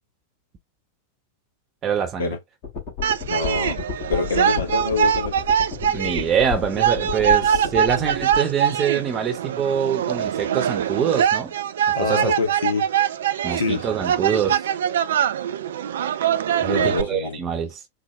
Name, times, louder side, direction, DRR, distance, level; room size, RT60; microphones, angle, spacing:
voice 1, 1.8-2.4 5.8-11.5 12.0-12.3 13.4-14.6 16.6-17.8, right 7 dB, 30° right, 1.0 m, -24 dB
sound 1, 2.6-8.4, left 9 dB, 40° left, 2.2 m, -32 dB
sound 2, 3.0-17.0, right 9 dB, 60° right, 0.4 m, -23 dB
voice 2, 3.3-3.8 4.1-5.3 11.9-12.9 13.5-13.9 16.7-17.4, left 4 dB, 65° left, 1.6 m, -25 dB
4.6 x 2.1 x 3.3 m
figure-of-eight pair, 90°, 0 cm